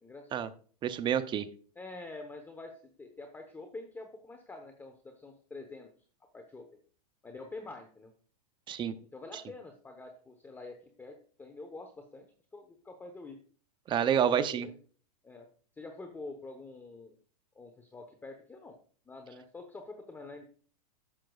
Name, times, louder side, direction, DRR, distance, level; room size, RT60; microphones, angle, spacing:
voice 1, 0.0-0.3 1.8-5.9 6.3-6.7 7.2-8.1 9.0-13.4 14.3-14.7 15.2-15.5 15.7-17.2 17.5-18.8 19.1-20.4, left 3 dB, 10° left, 5 dB, 0.9 m, -46 dB
voice 2, 0.8-1.5 8.7-8.9 13.9-14.7, right 8 dB, 25° right, 12 dB, 0.6 m, -28 dB
11.5 x 7.4 x 2.3 m, 0.43 s
hypercardioid pair, 135°, 21 cm